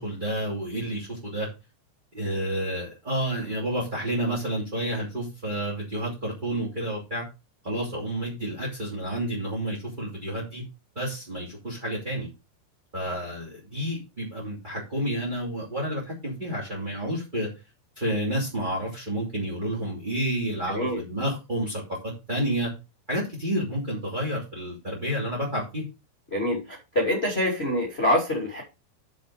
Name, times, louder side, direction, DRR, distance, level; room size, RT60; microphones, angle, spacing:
voice 1, 0.0-1.5 2.1-7.2 7.6-10.6 10.9-12.3 12.9-17.5 18.0-22.7 23.1-25.8, right 1 dB, 15° right, -3 dB, 1.8 m, -30 dB
voice 2, 20.7-21.0 26.3-28.6, left 1 dB, 25° left, -2 dB, 1.2 m, -25 dB
7.5 x 6.6 x 4.9 m, 0.27 s
omnidirectional pair, 5.5 m